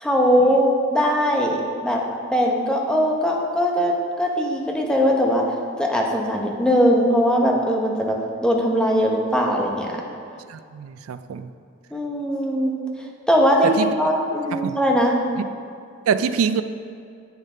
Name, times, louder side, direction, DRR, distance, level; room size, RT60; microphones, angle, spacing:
voice 1, 0.0-2.0 2.3-10.0 11.9-12.8 13.3-15.2, equal, 5° left, -1 dB, 0.9 m, -20 dB
voice 2, 10.5-11.5 13.6-13.9 14.5-14.8 15.4-15.5 16.1-16.6, right 6 dB, 85° right, 12 dB, 0.4 m, -24 dB
10.0 x 8.2 x 3.3 m, 2.4 s
head